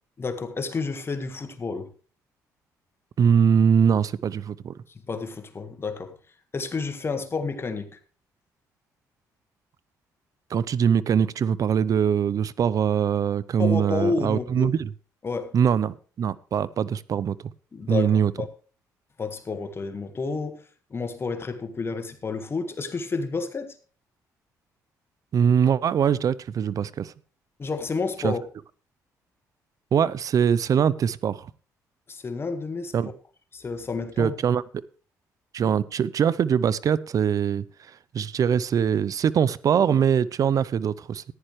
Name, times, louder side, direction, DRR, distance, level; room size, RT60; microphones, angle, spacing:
voice 1, 0.2-1.9 5.1-6.1 6.5-7.9 13.6-14.7 15.2-15.5 17.7-18.5 19.2-20.6 20.9-23.7 27.6-28.4 32.1-32.9 33.5-34.3, left 4 dB, 35° left, 1.6 m, -30 dB
voice 2, 3.2-4.7 10.5-14.9 15.5-17.4 17.9-18.3 25.3-27.1 28.2-28.3 29.9-31.5 32.9-33.1 34.2-34.6 35.5-37.6 38.1-41.2, right 7 dB, 55° right, 0.6 m, -22 dB
14.5 x 10.5 x 3.2 m
cardioid pair, 75°, 7 cm